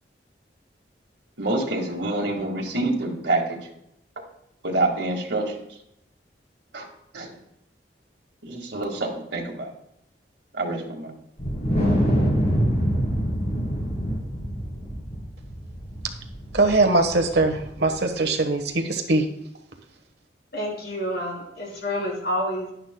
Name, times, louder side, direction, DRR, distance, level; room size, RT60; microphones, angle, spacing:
voice 1, 1.4-3.6 4.6-5.5 6.7-6.9 7.1-7.3 8.4-9.7 10.5-11.1, right 2 dB, 90° right, 0 dB, 1.8 m, -26 dB
Wind, 11.4-17.9, equal, 40° left, 2.7 m, -25 dB
voice 2, 16.5-19.2, right 2 dB, 70° right, 6 dB, 1.2 m, -21 dB
voice 3, 20.5-22.7, equal, 65° left, -1 dB, 2.9 m, -28 dB
11.0 x 10.5 x 2.2 m, 0.78 s
head